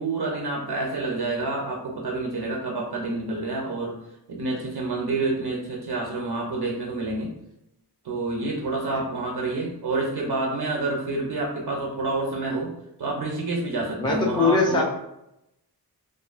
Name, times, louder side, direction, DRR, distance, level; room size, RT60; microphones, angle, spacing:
voice 1, 0.0-3.9 4.3-7.3 8.0-12.7 13.0-14.8, right 2 dB, 70° right, -1 dB, 0.5 m, -28 dB
voice 2, 14.0-14.8, left 4 dB, 10° left, -1 dB, 0.4 m, -22 dB
2.5 x 2.4 x 2.4 m, 0.83 s
wide cardioid pair, 55°, 40 cm